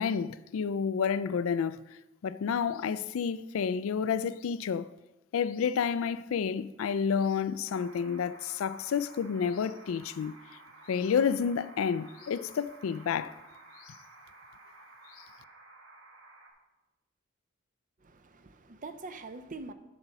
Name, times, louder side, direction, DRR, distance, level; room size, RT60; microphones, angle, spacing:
voice 1, 0.0-4.9 5.3-10.4 10.9-13.3 13.9-14.0, left 6 dB, 75° left, 0.4 m, -30 dB
sound 1, 7.7-16.5, right 2 dB, 65° right, 1.6 m, -53 dB
voice 2, 18.0-19.7, right 3 dB, 40° right, 0.5 m, -44 dB
7.9 x 5.9 x 5.4 m
head